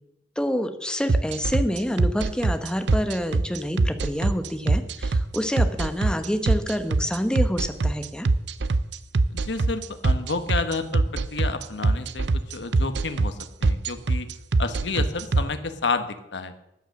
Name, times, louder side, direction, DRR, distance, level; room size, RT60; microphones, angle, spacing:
voice 1, 0.4-8.3, equal, 5° left, 8 dB, 1.1 m, -27 dB
sound 1, 1.1-15.4, right 3 dB, 80° right, 0.6 m, -22 dB
voice 2, 9.3-11.0 11.3-12.2 12.5-14.3 14.6-16.5, left 3 dB, 90° left, 9 dB, 1.2 m, -30 dB
13.5 x 9.2 x 6.4 m, 0.90 s
head